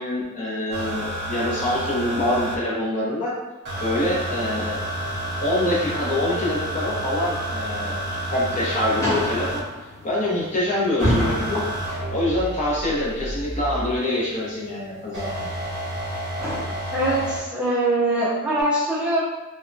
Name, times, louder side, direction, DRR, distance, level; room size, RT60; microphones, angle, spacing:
voice 1, 0.0-3.3 3.8-4.8 5.4-8.0 8.3-9.6 10.0-11.7 12.1-15.5, left 1 dB, 35° left, -5 dB, 0.7 m, -25 dB
sound 1, 0.7-2.6 3.6-9.6 11.0-14.0 15.1-17.4 18.6-18.7, right 1 dB, 50° right, 0.6 m, -30 dB
sound 2, 4.1-16.6, equal, 15° left, 1.2 m, -33 dB
voice 2, 16.9-19.2, right 1 dB, 5° right, -9 dB, 0.5 m, -22 dB
3.3 x 2.1 x 2.6 m, 1.1 s
head